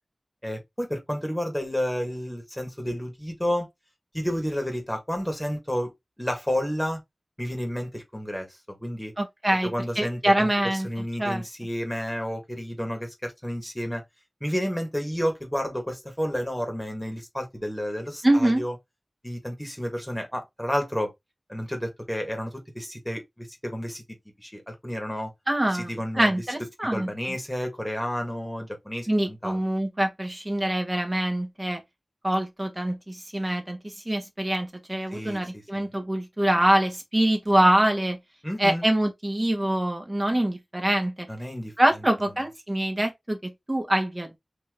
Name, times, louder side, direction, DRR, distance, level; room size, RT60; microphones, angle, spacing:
voice 1, 0.4-3.7 4.1-5.9 6.2-7.0 7.4-9.1 9.6-14.0 14.4-18.8 19.2-21.1 21.5-24.0 24.4-25.3 25.6-26.3 26.9-29.6 35.1-35.9 38.4-38.9 41.3-41.7, equal, 5° left, 1.9 m, -31 dB
voice 2, 9.2-9.7 10.0-10.9 11.2-11.4 18.2-18.6 25.5-25.9 26.1-27.1 29.1-31.8 32.2-38.2 38.6-41.3 41.8-44.4, right 1 dB, 25° right, 1.7 m, -24 dB
4.4 x 3.1 x 3.1 m
wide cardioid pair, 50°, 0 cm